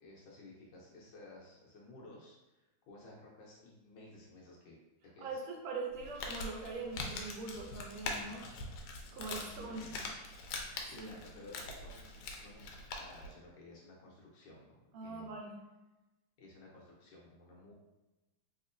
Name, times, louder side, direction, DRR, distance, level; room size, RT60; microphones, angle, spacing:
voice 1, 0.0-5.4 9.4-10.0 10.9-12.7 13.0-15.4 16.4-17.7, left 2 dB, 70° left, -4 dB, 1.4 m, -55 dB
voice 2, 5.2-8.4 9.1-9.8 10.8-11.1 14.9-15.6, right 3 dB, 85° right, 0 dB, 1.5 m, -42 dB
Crumpling crinkling, 5.9-13.3, left 3 dB, 85° left, 1.4 m, -43 dB
3.5 x 3.0 x 2.5 m, 1.0 s
omnidirectional pair, 2.3 m